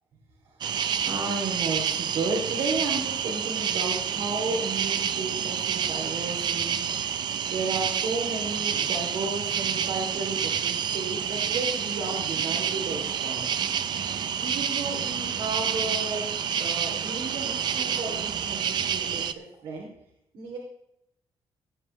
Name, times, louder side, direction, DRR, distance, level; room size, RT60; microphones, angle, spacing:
sound 1, 0.6-19.3, right 8 dB, 50° right, 0.7 m, -28 dB
voice 1, 0.6-13.5 14.4-16.2 16.6-19.9 20.3-20.6, right 3 dB, 70° right, -2 dB, 3.1 m, -33 dB
18.0 x 9.4 x 3.3 m, 0.78 s
cardioid pair, 170°, 9 cm